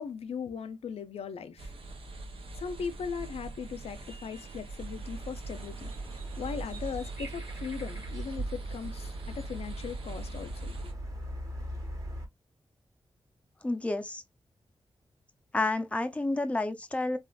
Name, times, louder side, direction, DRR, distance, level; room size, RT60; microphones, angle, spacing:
voice 1, 0.0-1.7 2.6-5.9 6.4-10.9, left 6 dB, 90° left, 0.5 m, -38 dB
sound 1, 1.6-10.9, right 3 dB, 65° right, 0.8 m, -44 dB
sound 2, 4.7-12.3, right 2 dB, 35° right, 1.4 m, -39 dB
voice 2, 13.6-14.2 15.5-17.2, left 2 dB, 15° left, 0.5 m, -30 dB
3.4 x 2.4 x 2.3 m
cardioid pair, 75°, 10 cm